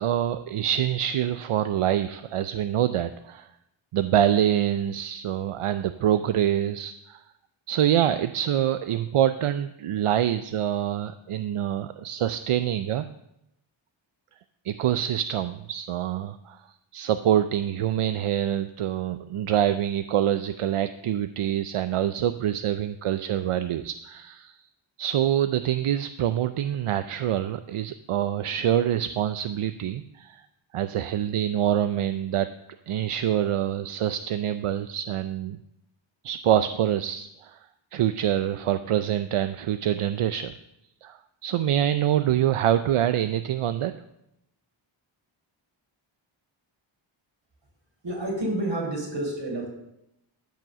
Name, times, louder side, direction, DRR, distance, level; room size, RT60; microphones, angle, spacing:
voice 1, 0.0-3.5 3.9-7.2 7.7-13.1 14.6-16.6 16.9-24.6 25.0-30.4 30.7-32.5 32.9-35.6 36.2-37.6 37.9-40.5 41.0-43.9, right 10 dB, 85° right, 11 dB, 0.6 m, -25 dB
voice 2, 48.0-49.7, right 1 dB, 60° right, -1 dB, 4.5 m, -29 dB
13.5 x 6.3 x 6.8 m, 0.83 s
wide cardioid pair, 105°, 50 cm